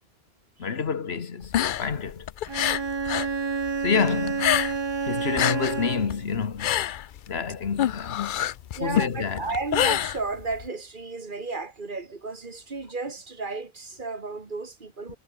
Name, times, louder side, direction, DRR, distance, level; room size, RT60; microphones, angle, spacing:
voice 1, 0.6-2.3 3.8-4.6 5.0-6.9 7.3-8.2 8.8-9.5, left 6 dB, 80° left, 1.6 m, -28 dB
sound 1, 1.4-3.4 3.6-5.0 5.2-10.7, left 11 dB, 60° left, 0.6 m, -26 dB
Bowed string instrument, 2.5-6.3, right 4 dB, 30° right, 0.7 m, -29 dB
voice 2, 8.8-15.2, right 3 dB, 55° right, 2.0 m, -33 dB
omnidirectional pair, 1.0 m